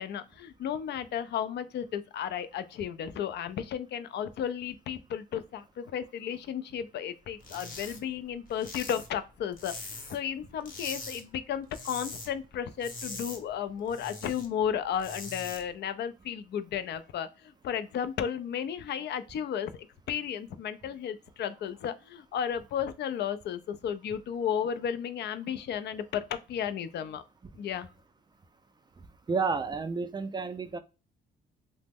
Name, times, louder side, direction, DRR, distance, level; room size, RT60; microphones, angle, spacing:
voice 1, 0.0-19.7 20.1-27.2 27.6-27.9, left 8 dB, 60° left, 0.4 m, -34 dB
sound 1, 7.4-8.0 8.3-10.3 10.6-11.2 11.5-12.3 12.6-14.5 14.8-15.6, left 3 dB, 45° left, 0.9 m, -42 dB
voice 2, 29.3-30.8, right 4 dB, 20° right, 0.3 m, -30 dB
2.9 x 2.0 x 3.4 m
cardioid pair, 90°, 20 cm